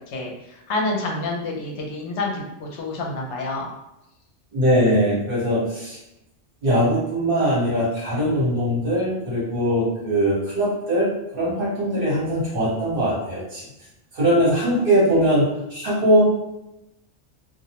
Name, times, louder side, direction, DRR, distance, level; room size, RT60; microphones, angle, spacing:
voice 1, 0.7-3.7, left 2 dB, 75° left, 0 dB, 0.9 m, -28 dB
voice 2, 4.5-6.0 6.6-13.6 14.1-16.2, equal, 50° right, -7 dB, 1.1 m, -21 dB
2.4 x 2.0 x 2.8 m, 0.90 s
omnidirectional pair, 1.2 m